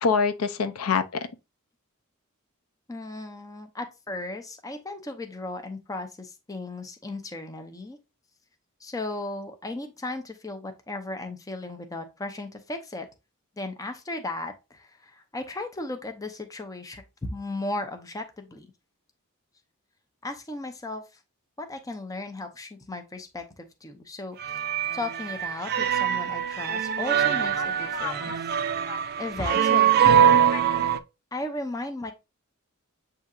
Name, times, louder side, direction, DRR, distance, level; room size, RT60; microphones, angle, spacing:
voice 1, 0.0-1.0 27.6-28.4 28.9-29.0 29.5-29.6 30.3-30.6, left 5 dB, 85° left, 0.5 m, -27 dB
voice 2, 2.9-8.0 8.8-13.1 13.6-18.7 20.2-21.0 21.6-28.4 29.2-30.4 31.3-32.1, left 2 dB, 15° left, 0.6 m, -36 dB
sound 1, 24.4-31.0, right 9 dB, 45° right, 0.3 m, -23 dB
7.7 x 2.8 x 2.4 m
head